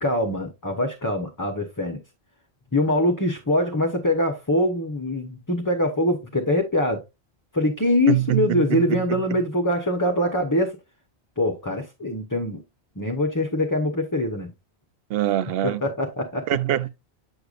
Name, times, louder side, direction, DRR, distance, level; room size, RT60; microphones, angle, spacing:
voice 1, 0.0-2.0 2.7-7.0 7.5-10.8 11.4-12.6 13.0-14.5 15.6-16.5, left 1 dB, 20° left, 0.9 m, -23 dB
voice 2, 8.1-9.2 15.1-15.8 16.5-16.9, right 12 dB, 70° right, 0.7 m, -24 dB
8.0 x 6.7 x 2.4 m
omnidirectional pair, 1.1 m